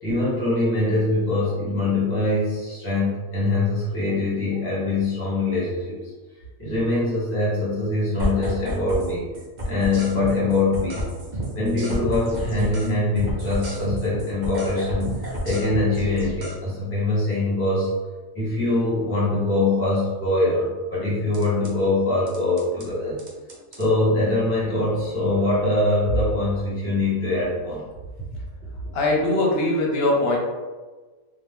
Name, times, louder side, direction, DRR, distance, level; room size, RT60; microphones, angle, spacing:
voice 1, 0.0-6.1 6.6-9.3 9.6-11.0 11.5-15.1 15.4-17.9 18.3-23.2 23.7-27.8, left 2 dB, 10° left, -7 dB, 0.8 m, -23 dB
sound 1, 8.2-9.1 9.3-12.9 13.2-16.5 21.3-21.7 22.3-22.9 23.2-23.9, equal, 45° right, 0.7 m, -29 dB
voice 2, 28.9-30.4, left 2 dB, 60° left, -1 dB, 0.7 m, -21 dB
2.8 x 2.1 x 3.3 m, 1.3 s
omnidirectional pair, 1.4 m